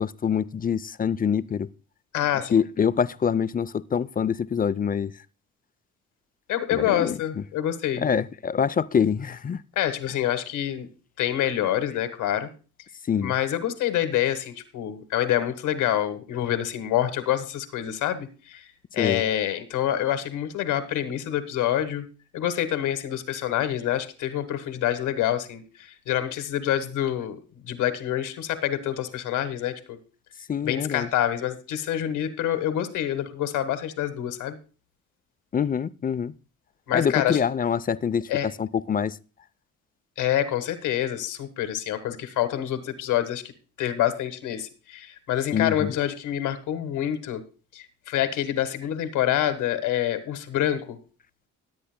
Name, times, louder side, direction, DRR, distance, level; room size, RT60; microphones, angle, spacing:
voice 1, 0.0-1.7 2.5-5.1 6.7-7.2 8.0-9.6 13.1-13.3 19.0-19.2 30.5-31.1 35.5-36.3 36.9-39.2 45.5-46.0, left 7 dB, 30° left, 0.5 m, -25 dB
voice 2, 2.1-2.6 6.5-8.0 9.7-10.9 11.2-12.5 13.2-18.7 18.9-22.1 22.3-30.0 30.6-34.6 36.9-37.4 38.3-38.5 40.2-43.4 43.8-47.4 47.7-51.0, left 11 dB, 85° left, 1.5 m, -27 dB
20.5 x 8.3 x 2.2 m
cardioid pair, 90°, 30 cm